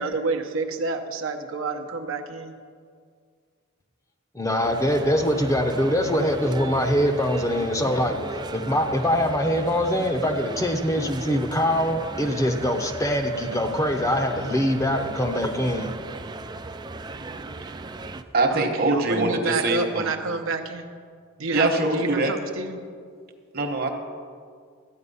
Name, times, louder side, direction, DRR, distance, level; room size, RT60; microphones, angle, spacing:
voice 1, 0.0-2.6 18.5-20.9 21.4-22.8, right 3 dB, 70° right, 4 dB, 0.8 m, -29 dB
voice 2, 4.3-8.2 8.5-15.9, equal, 15° left, 4 dB, 0.7 m, -23 dB
sound 1, 4.6-18.2, right 2 dB, 20° right, 0.4 m, -37 dB
voice 3, 18.3-20.1 21.5-22.3 23.5-23.9, right 2 dB, 45° right, 4 dB, 1.2 m, -23 dB
13.0 x 9.1 x 5.5 m, 2.1 s
head